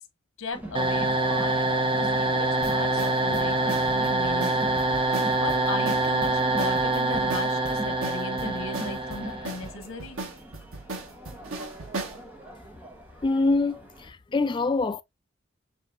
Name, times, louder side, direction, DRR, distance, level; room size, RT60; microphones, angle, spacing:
voice 1, 0.4-10.2, left 3 dB, 85° left, 1.1 m, -37 dB
Crowd, 0.5-14.1, right 1 dB, 10° right, 1.1 m, -41 dB
sound 1, 0.7-9.7, right 2 dB, 25° right, 0.8 m, -25 dB
sound 2, 2.6-12.2, right 2 dB, 85° right, 1.3 m, -37 dB
voice 2, 13.2-15.0, left 3 dB, 20° left, 0.3 m, -25 dB
6.7 x 2.8 x 2.4 m
head